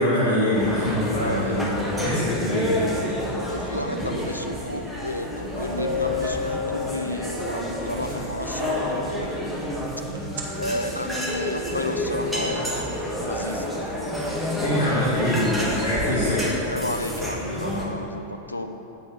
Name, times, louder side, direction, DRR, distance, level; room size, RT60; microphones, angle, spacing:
voice 1, 0.0-2.9 14.6-16.5, left 1 dB, 65° left, -9 dB, 2.3 m, -24 dB
sound 1, 0.5-17.9, equal, ahead, 1.6 m, -29 dB
voice 2, 1.1-1.7 3.5-9.3 10.6-13.8 16.7-18.7, left 1 dB, 85° left, 6 dB, 0.6 m, -32 dB
sound 2, 5.3-5.4 5.8-7.5 10.2-10.4, left 6 dB, 60° right, 1.1 m, -29 dB
8.1 x 5.7 x 6.9 m, 2.9 s
figure-of-eight pair, 90°, 0 cm